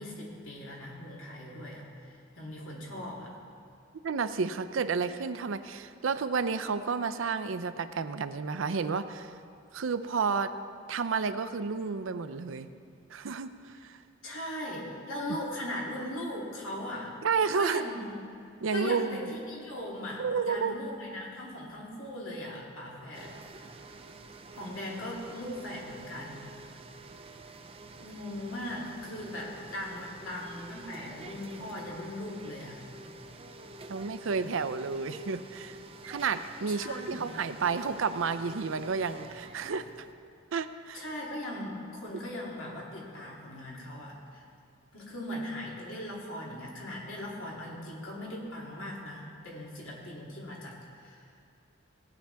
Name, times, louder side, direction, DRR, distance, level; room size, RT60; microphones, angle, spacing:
voice 1, 0.0-3.3 14.2-17.1 17.5-18.2 18.7-23.3 24.6-26.5 28.0-32.9 36.7-37.3 40.9-44.4 44.9-51.3, left 1 dB, 90° left, -4 dB, 2.8 m, -39 dB
voice 2, 4.0-9.4 9.7-10.5 10.9-12.7 13.1-14.0 17.2-17.8 18.6-19.3 20.2-20.7 33.9-35.8 36.1-40.1 40.5-41.0, right 5 dB, 75° right, 11 dB, 0.5 m, -31 dB
sound 1, 23.1-40.1, right 2 dB, 30° right, 0.6 m, -48 dB
18.0 x 9.3 x 3.4 m, 2.5 s
head